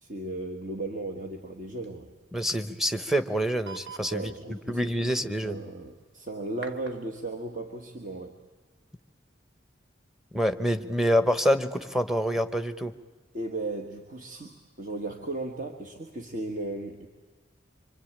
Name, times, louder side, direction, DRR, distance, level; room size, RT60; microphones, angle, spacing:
voice 1, 0.0-2.1 4.1-8.4 13.3-17.1, right 2 dB, 45° right, 4 dB, 1.6 m, -36 dB
sound 1, 1.8-1.9 2.2-2.3 2.5-2.6 3.2-3.3 3.7-4.1 6.6-7.0, right 5 dB, 75° right, 1.6 m, -42 dB
voice 2, 2.3-4.3 4.7-5.6 10.3-12.9, equal, ahead, 10 dB, 1.0 m, -26 dB
25.5 x 25.0 x 8.9 m, 1.4 s
head